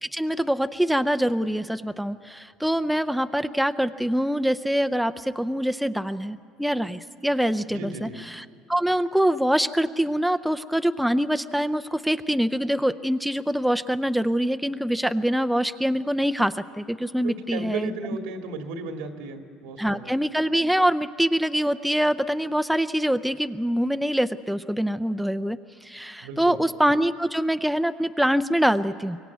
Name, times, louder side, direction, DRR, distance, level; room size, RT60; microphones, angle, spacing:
voice 1, 0.0-8.4 8.7-17.9 19.8-29.2, equal, ahead, 9 dB, 0.6 m, -24 dB
voice 2, 7.7-8.2 17.2-20.1 26.2-26.6, right 3 dB, 90° right, 4 dB, 2.0 m, -35 dB
23.5 x 17.0 x 9.3 m, 2.3 s
supercardioid pair, 100°, 0 cm